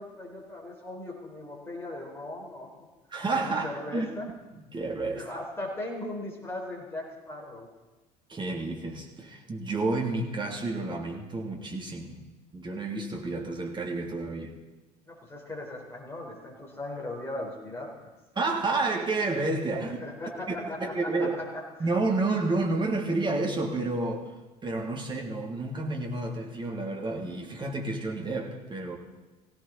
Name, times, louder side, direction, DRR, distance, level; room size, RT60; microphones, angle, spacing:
voice 1, 0.0-2.9 3.4-4.3 5.1-7.7 15.0-18.1 19.8-21.6, left 1 dB, 10° left, -3 dB, 4.3 m, -38 dB
voice 2, 3.1-4.1 4.5-5.3 8.3-12.3 12.5-14.6 18.3-20.0 20.8-21.4 21.8-24.3 24.6-29.0, right 3 dB, 25° right, 1 dB, 2.9 m, -30 dB
20.0 x 16.5 x 4.1 m, 1.2 s
figure-of-eight pair, 60°, 21 cm